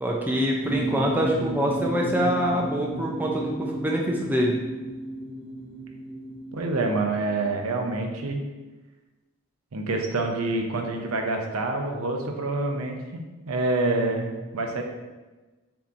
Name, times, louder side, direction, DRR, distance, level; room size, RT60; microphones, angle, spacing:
voice 1, 0.0-4.6, equal, 10° right, -1 dB, 0.4 m, -25 dB
sound 1, 0.6-7.9, right 1 dB, 15° left, 0.8 m, -33 dB
voice 2, 6.5-8.4 9.7-14.8, right 2 dB, 85° right, 3 dB, 0.6 m, -27 dB
6.9 x 2.9 x 2.5 m, 1.2 s
head